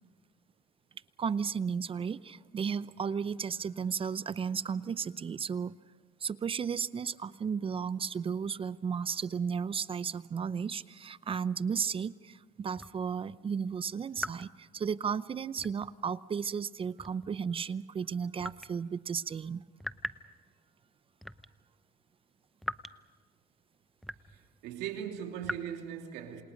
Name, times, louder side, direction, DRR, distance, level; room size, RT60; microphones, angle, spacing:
voice 1, 1.2-5.7 6.2-19.6, right 6 dB, 35° right, 0.7 m, -34 dB
sound 1, 12.8-13.0 14.2-14.5 15.6-16.0 17.0-17.4 18.4-18.7 19.8-20.3 21.2-21.5 22.6-22.9 24.0-24.4 25.4-25.6, equal, ahead, 0.7 m, -39 dB
voice 2, 24.3-26.4, right 9 dB, 90° right, 3.0 m, -39 dB
28.0 x 27.5 x 5.2 m
cardioid pair, 105°, 16 cm